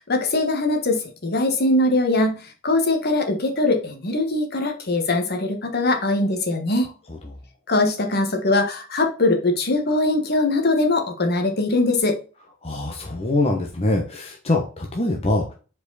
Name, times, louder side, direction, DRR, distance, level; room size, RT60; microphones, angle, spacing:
voice 1, 0.1-2.4 2.6-6.9 7.7-12.2, left 2 dB, 55° left, 4 dB, 1.5 m, -21 dB
voice 2, 12.6-15.5, left 2 dB, 30° left, 1 dB, 1.1 m, -23 dB
5.1 x 4.7 x 4.0 m, 0.35 s
head